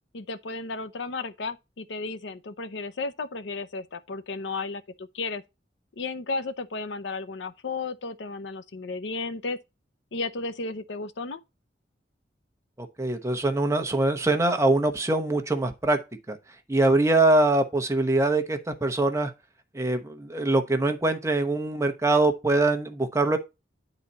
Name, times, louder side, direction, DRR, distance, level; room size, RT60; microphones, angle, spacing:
voice 1, 0.1-5.4 6.0-9.6 10.1-11.4, left 3 dB, 75° left, 0.7 m, -33 dB
voice 2, 12.8-16.0 16.3-16.4 16.7-19.3 19.7-23.4, right 2 dB, 15° right, 0.9 m, -23 dB
9.9 x 4.1 x 4.0 m
head